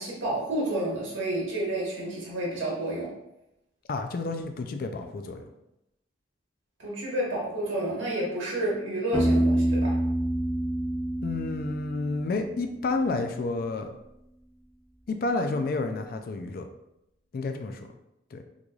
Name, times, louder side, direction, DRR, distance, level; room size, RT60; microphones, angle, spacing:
voice 1, 0.0-3.1 6.8-10.0, right 1 dB, 85° right, -5 dB, 1.3 m, -30 dB
voice 2, 3.9-5.5 11.2-13.9 15.1-16.7 17.3-17.9 18.3-18.4, left 3 dB, 50° left, 5 dB, 0.3 m, -30 dB
Piano, 9.1-12.8, right 1 dB, 15° left, 0.7 m, -27 dB
3.8 x 3.1 x 2.3 m, 0.86 s
head